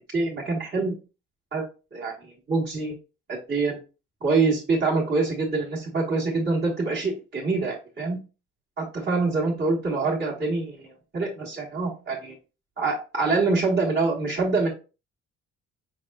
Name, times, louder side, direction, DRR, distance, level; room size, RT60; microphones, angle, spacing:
voice 1, 0.1-0.9 1.5-1.6 1.9-2.9 3.3-3.8 4.2-8.2 8.8-10.8 11.1-12.3 12.8-14.7, right 3 dB, 35° right, -6 dB, 1.4 m, -25 dB
5.4 x 3.4 x 2.4 m, 0.32 s
cardioid pair, 90°, 30 cm